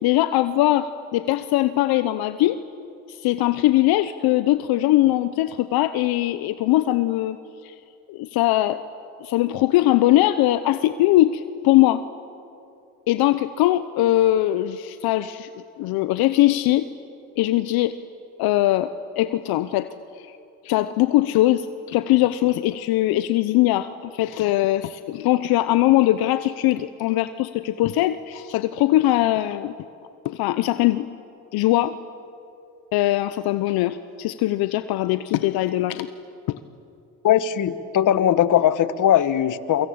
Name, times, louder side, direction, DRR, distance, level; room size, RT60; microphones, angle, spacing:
voice 1, 0.0-2.6 3.1-7.4 7.6-7.7 8.1-8.8 9.2-12.0 13.1-15.5 15.8-16.9 17.4-18.0 18.4-18.9 19.2-19.9 20.3-20.4 20.6-29.7 30.2-31.1 31.5-32.0 32.9-36.1 36.5-36.6, left 15 dB, 75° left, 12 dB, 0.9 m, -21 dB
voice 2, 37.2-39.9, left 10 dB, 55° left, 14 dB, 1.3 m, -19 dB
28.5 x 24.0 x 8.7 m, 2.7 s
supercardioid pair, 90°, 37 cm